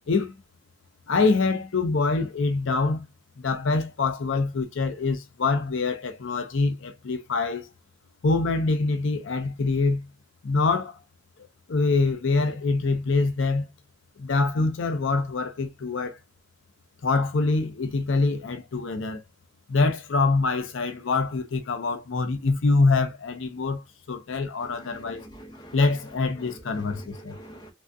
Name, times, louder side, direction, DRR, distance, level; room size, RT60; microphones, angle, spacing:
voice 1, 1.1-3.1 3.4-7.7 8.2-10.1 10.4-11.0 11.7-13.7 14.2-16.2 17.0-19.2 19.7-25.2 25.7-27.4, left 3 dB, 75° left, 0.5 m, -25 dB
voice 2, 24.8-25.8 26.4-27.7, right 1 dB, 20° left, 0.7 m, -45 dB
3.2 x 2.4 x 2.6 m
head